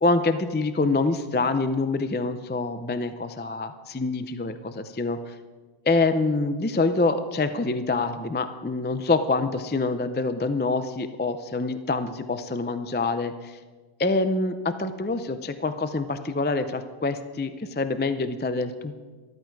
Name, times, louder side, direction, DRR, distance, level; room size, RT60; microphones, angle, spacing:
voice 1, 0.0-5.4 5.9-13.6 14.0-19.0, left 3 dB, 15° left, 10 dB, 0.3 m, -26 dB
13.5 x 13.0 x 4.7 m, 1.4 s
omnidirectional pair, 1.1 m